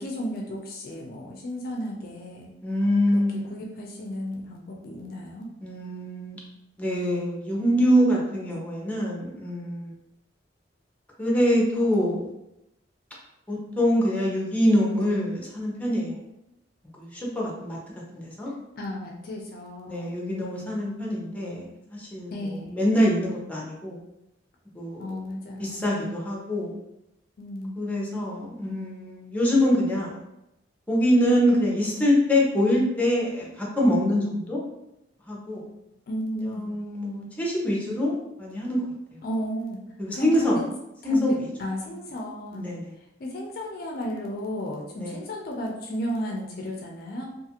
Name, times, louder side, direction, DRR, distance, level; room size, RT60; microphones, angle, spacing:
voice 1, 0.0-2.5 3.1-3.2 3.5-5.5 18.8-20.2 22.3-22.7 25.0-25.9 27.4-27.9 36.1-36.7 39.2-39.8 40.1-40.6 41.0-41.3 41.6-42.7 43.0-47.3, equal, 55° left, 0 dB, 0.4 m, -33 dB
voice 2, 2.6-3.6 5.6-6.4 6.8-9.9 11.2-12.3 13.5-16.2 17.0-17.8 18.1-18.5 19.9-22.3 22.7-24.0 24.7-25.1 25.6-26.7 27.8-30.2 30.9-34.6 35.3-35.7 36.3-39.2 40.0-40.6 41.0-41.5 42.5-42.8 45.0-45.2, equal, 10° left, -4 dB, 0.6 m, -24 dB
2.5 x 2.4 x 2.8 m, 0.86 s
head